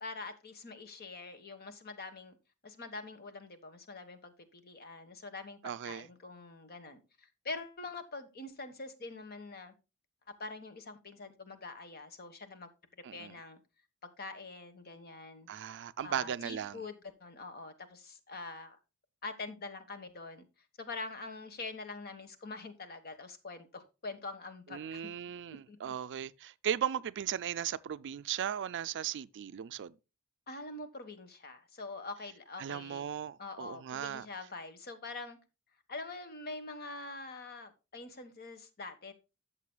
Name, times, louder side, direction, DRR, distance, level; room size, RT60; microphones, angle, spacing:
voice 1, 0.0-2.4 2.6-9.7 10.4-12.7 13.1-13.6 14.2-15.5 16.0-18.8 19.2-20.5 20.8-25.1 25.7-25.9 30.5-33.1 33.4-35.4 35.9-39.1, left 3 dB, 45° left, 1.3 m, -45 dB
voice 2, 5.6-6.1 13.0-13.4 15.5-16.8 24.7-29.9 32.6-34.3, right 9 dB, 55° right, 0.4 m, -37 dB
13.5 x 6.8 x 2.2 m
head